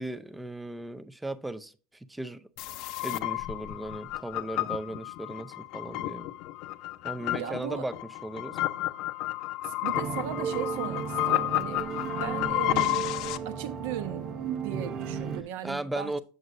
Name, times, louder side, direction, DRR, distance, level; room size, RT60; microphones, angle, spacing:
voice 1, 0.0-2.5 3.0-6.3 7.0-8.6 12.7-12.9 15.6-16.2, right 1 dB, 5° right, 0.5 m, -37 dB
sound 1, 2.6-13.4, left 16 dB, 45° left, 0.5 m, -31 dB
voice 2, 7.3-7.9 9.6-11.9 12.2-13.2 13.4-16.2, right 10 dB, 65° right, 1.0 m, -37 dB
sound 2, 9.9-15.4, right 7 dB, 35° right, 0.9 m, -35 dB
7.9 x 7.3 x 2.6 m
supercardioid pair, 155°, 0 cm